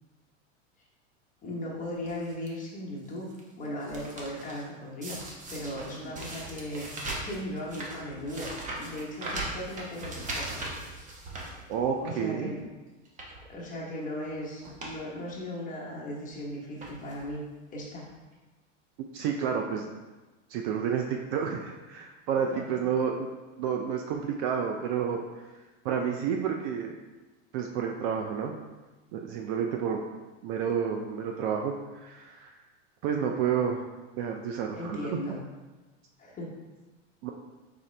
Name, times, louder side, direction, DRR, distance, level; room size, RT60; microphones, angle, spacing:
voice 1, 1.4-3.3 3.6-6.9 7.2-10.5 11.5-11.7 12.0-12.6 13.5-17.4 17.7-18.0 22.5-22.8 34.8-35.4 36.2-36.5, left 1 dB, 20° left, -4 dB, 1.1 m, -37 dB
sound 1, 2.0-2.5 3.0-3.4 3.6-4.6 5.0-12.1 12.5-12.6 13.0-13.4 14.2-14.3 14.6-15.0 15.3-15.4 16.3-16.4 16.8-17.3 18.0-18.1 18.3-18.4, right 2 dB, 20° right, 0.8 m, -39 dB
voice 2, 11.7-12.5 19.1-19.9 20.5-23.3 23.6-25.2 25.8-26.9 27.5-28.5 29.1-30.0 30.4-31.7 32.0-32.5 33.0-33.8 34.2-35.2 37.2-37.3, right 7 dB, 45° right, 2 dB, 0.4 m, -30 dB
4.3 x 3.6 x 3.2 m, 1.2 s
supercardioid pair, 125°, 37 cm